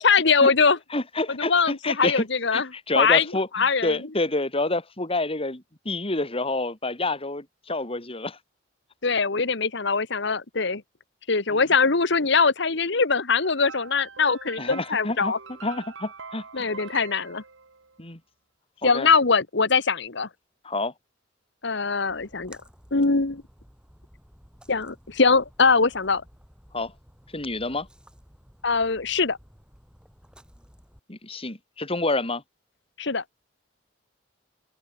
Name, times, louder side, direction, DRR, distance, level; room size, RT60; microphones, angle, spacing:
voice 1, 0.0-0.8 1.3-2.7 2.9-3.3 3.5-4.0 9.0-10.8 11.3-15.4 16.5-17.4 18.8-20.3 21.6-22.6 22.9-23.4 24.7-26.2 28.6-29.4 33.0-33.2, left 4 dB, 65° left, 1.4 m, -22 dB
voice 2, 0.9-2.2 2.5-8.4 11.5-11.6 14.6-15.3 15.6-16.7 18.0-18.2 18.8-19.1 20.6-20.9 26.7-26.9 27.3-27.9 31.1-32.4, left 2 dB, 30° left, 3.3 m, -28 dB
sound 1, 13.4-18.0, right 5 dB, 90° right, 2.4 m, -43 dB
Splash splatter, 22.1-31.0, equal, 5° right, 7.2 m, -54 dB
open air
head